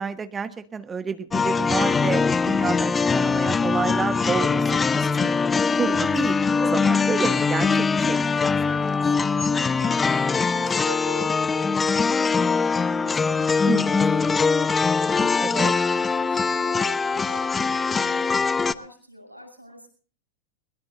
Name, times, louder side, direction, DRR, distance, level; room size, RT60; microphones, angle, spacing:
voice 1, 0.0-4.6 5.2-5.4 5.8-6.3 6.6-8.5 8.8-9.0 13.6-13.9 15.4-15.7, right 5 dB, 15° right, 12 dB, 1.2 m, -29 dB
sound 1, 1.3-18.7, left 5 dB, 15° left, 0.8 m, -22 dB
voice 2, 6.0-6.3 9.5-19.9, equal, 90° right, 4 dB, 6.9 m, -44 dB
23.0 x 22.0 x 2.6 m, 0.42 s
figure-of-eight pair, 90°, 0 cm